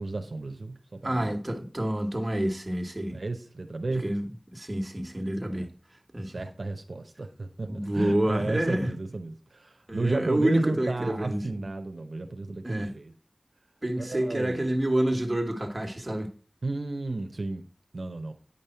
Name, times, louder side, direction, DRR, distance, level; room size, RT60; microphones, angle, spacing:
voice 1, 0.0-1.3 3.1-4.0 6.2-13.1 14.0-14.7 16.6-17.7 17.9-18.3, right 2 dB, 80° right, 0.8 m, -33 dB
voice 2, 1.0-3.2 3.9-5.7 6.1-6.3 7.7-8.9 9.9-11.5 12.6-12.9 13.8-16.3, right 1 dB, 30° right, 1.4 m, -28 dB
8.9 x 5.4 x 4.4 m
wide cardioid pair, 55°, 0 cm